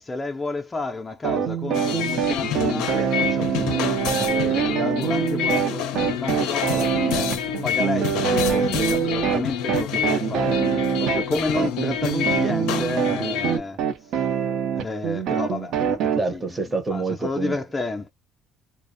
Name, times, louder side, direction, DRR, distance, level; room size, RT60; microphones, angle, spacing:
voice 1, 0.0-7.3 7.6-14.1 14.7-16.4 16.9-18.1, left 3 dB, 20° left, 0.4 m, -31 dB
sound 1, 1.2-16.2, right 8 dB, 70° right, 0.5 m, -24 dB
sound 2, 1.7-13.6, left 9 dB, 85° left, 0.4 m, -28 dB
voice 2, 16.2-17.6, right 3 dB, 20° right, 0.6 m, -27 dB
2.4 x 2.0 x 2.5 m
cardioid pair, 115°, 0 cm